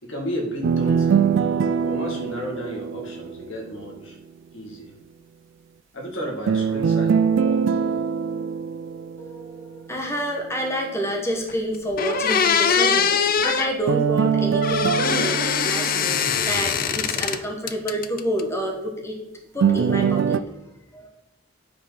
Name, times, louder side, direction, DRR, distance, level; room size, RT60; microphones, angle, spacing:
voice 1, 0.0-4.2 4.5-4.9 5.9-7.6, equal, 75° left, 1 dB, 2.2 m, -33 dB
sound 1, 0.6-3.7 6.5-9.7 13.9-16.9 19.6-20.4, right 6 dB, 65° right, 0.3 m, -23 dB
voice 2, 9.2-19.2 19.5-20.4 20.9-21.1, equal, 15° left, 2 dB, 1.1 m, -28 dB
sound 2, 11.5-11.6 12.0-13.7 14.6-17.4 17.7-18.4, left 7 dB, 45° left, 0.5 m, -22 dB
8.9 x 5.1 x 6.0 m, 0.94 s
head